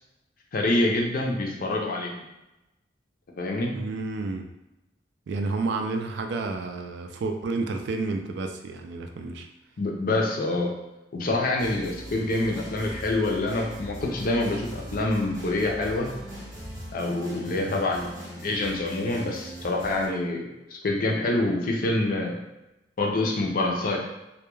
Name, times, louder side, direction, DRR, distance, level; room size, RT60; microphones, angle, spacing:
voice 1, 0.5-2.1 3.4-3.7 9.8-10.7 11.1-16.1 16.9-18.0 18.3-20.5 20.8-22.4 23.0-24.0, left 2 dB, 50° left, 0 dB, 0.5 m, -26 dB
voice 2, 3.7-4.4 5.3-9.5 12.1-12.3 17.4-17.8, right 3 dB, 65° right, 5 dB, 0.3 m, -31 dB
sound 1, 11.6-20.1, equal, 20° right, 0.6 m, -40 dB
2.2 x 2.2 x 3.0 m, 0.94 s
head